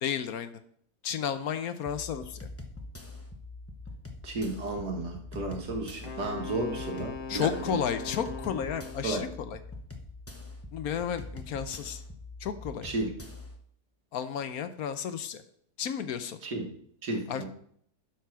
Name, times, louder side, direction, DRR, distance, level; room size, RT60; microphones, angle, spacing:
voice 1, 0.0-0.5 1.0-2.4 7.3-9.6 10.7-12.0 12.4-12.9 14.1-15.4 15.8-16.4 17.3-17.5, left 8 dB, 70° left, 10 dB, 1.1 m, -32 dB
sound 1, 1.9-13.6, left 2 dB, 10° left, 0.7 m, -44 dB
voice 2, 4.2-7.8 9.0-9.3 12.8-13.1 16.4-16.7 17.0-17.5, right 2 dB, 80° right, 2 dB, 2.2 m, -33 dB
Wind instrument woodwind instrument, 6.0-9.2, left 5 dB, 45° left, 0.7 m, -40 dB
11.5 x 4.7 x 6.0 m, 0.65 s
omnidirectional pair, 1.7 m